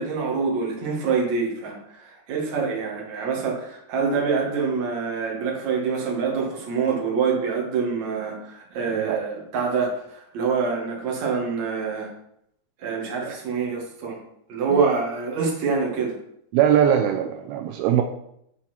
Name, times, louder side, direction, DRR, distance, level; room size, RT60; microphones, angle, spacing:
voice 1, 0.0-12.1 12.8-14.2 14.5-16.2, right 5 dB, 50° right, -1 dB, 2.9 m, -26 dB
voice 2, 16.5-18.0, right 9 dB, 85° right, 4 dB, 2.5 m, -21 dB
13.0 x 4.5 x 4.4 m, 0.73 s
omnidirectional pair, 4.6 m